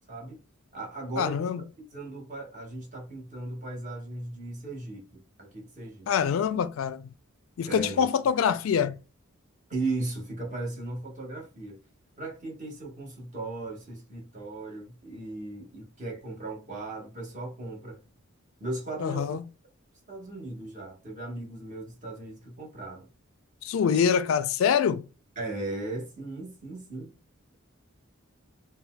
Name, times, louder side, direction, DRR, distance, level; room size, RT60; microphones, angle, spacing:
voice 1, 0.1-0.4 0.7-1.5 1.9-6.1 7.7-8.1 9.7-11.8 12.2-18.0 18.6-19.4 20.1-23.1 25.4-27.1, right 2 dB, 40° right, 1.0 m, -37 dB
voice 2, 1.2-1.6 6.1-7.1 7.6-9.0 19.0-19.4 23.6-25.1, left 7 dB, 75° left, 0.3 m, -25 dB
3.9 x 2.2 x 2.2 m
head